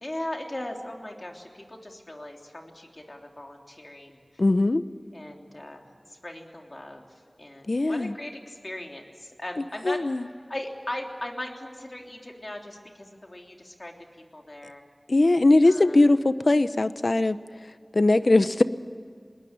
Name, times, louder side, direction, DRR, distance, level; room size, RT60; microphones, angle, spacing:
voice 1, 0.0-4.2 5.1-7.0 7.4-10.0 10.5-13.9 14.3-14.8 15.7-16.1 18.2-18.3, left 1 dB, 45° left, 2 dB, 3.3 m, -38 dB
voice 2, 4.4-4.8 7.7-8.1 9.6-10.3 15.1-17.4 17.9-18.6, left 2 dB, 70° left, 12 dB, 0.9 m, -20 dB
20.5 x 19.5 x 8.8 m, 2.2 s
wide cardioid pair, 50°, 0 cm